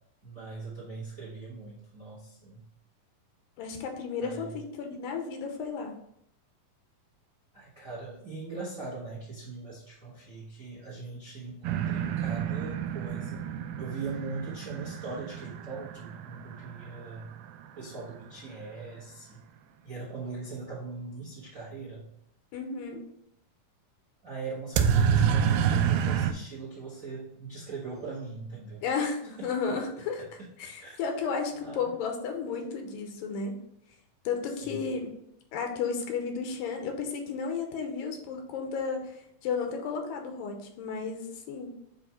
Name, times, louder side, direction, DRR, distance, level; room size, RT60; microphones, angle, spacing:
voice 1, 0.2-2.6 4.2-4.5 7.5-13.5 13.8-17.3 17.8-19.4 19.8-22.1 24.2-28.8 29.4-29.5 30.2-30.3 30.8-31.0 31.5-31.9 34.6-34.9, right 3 dB, 45° right, -6 dB, 1.1 m, -40 dB
voice 2, 3.6-5.9 22.5-23.0 28.8-30.2 30.6-33.6 34.3-35.2 35.5-39.1 39.4-41.7, left 5 dB, 80° left, 3 dB, 2.5 m, -33 dB
sound 1, 11.6-17.4 24.8-26.3, right 8 dB, 85° right, 2.3 m, -28 dB
7.9 x 2.7 x 4.4 m, 0.74 s
omnidirectional pair, 3.9 m